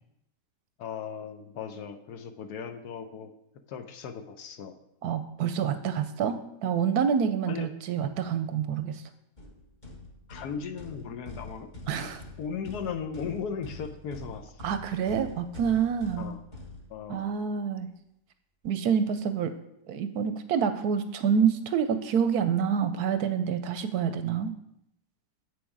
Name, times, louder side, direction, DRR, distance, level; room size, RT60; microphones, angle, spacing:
voice 1, 0.8-3.3 3.7-4.8 7.5-7.7 10.3-11.7 11.9-12.1 12.4-14.6 16.2-16.4 16.9-17.3, left 6 dB, 70° left, 7 dB, 1.2 m, -37 dB
voice 2, 5.0-9.0 11.9-12.2 14.6-16.3 17.1-17.9 18.6-19.5 19.9-24.5, right 7 dB, 70° right, 9 dB, 1.0 m, -27 dB
sound 1, 9.4-17.4, left 2 dB, 30° left, 1.2 m, -45 dB
8.1 x 6.2 x 4.7 m, 0.80 s
omnidirectional pair, 1.8 m